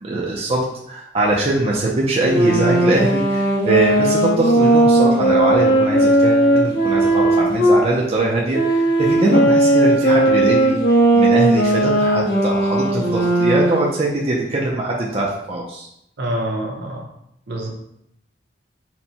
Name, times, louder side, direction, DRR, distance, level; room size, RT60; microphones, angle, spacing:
voice 1, 0.0-15.9, right 2 dB, 35° right, -3 dB, 0.5 m, -22 dB
sound 1, 2.1-7.8 8.5-13.9, right 1 dB, 60° left, 1.0 m, -16 dB
voice 2, 16.2-17.0 17.5-17.7, right 1 dB, 65° right, 0 dB, 0.8 m, -25 dB
4.3 x 2.2 x 4.1 m, 0.76 s
head